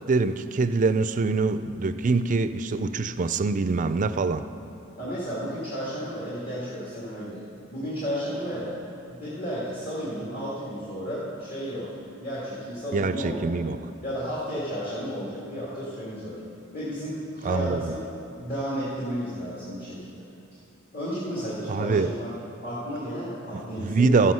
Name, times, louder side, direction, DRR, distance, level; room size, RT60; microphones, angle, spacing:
voice 1, 0.1-4.4 12.9-13.8 17.4-17.9 21.7-22.1 23.8-24.3, right 4 dB, 40° right, 11 dB, 0.4 m, -24 dB
voice 2, 5.0-8.8 9.1-11.9 12.2-13.6 14.0-16.4 16.7-18.0 18.4-20.2 20.9-22.3 22.6-24.3, equal, 45° left, -9 dB, 2.1 m, -33 dB
13.5 x 7.8 x 5.5 m, 2.6 s
head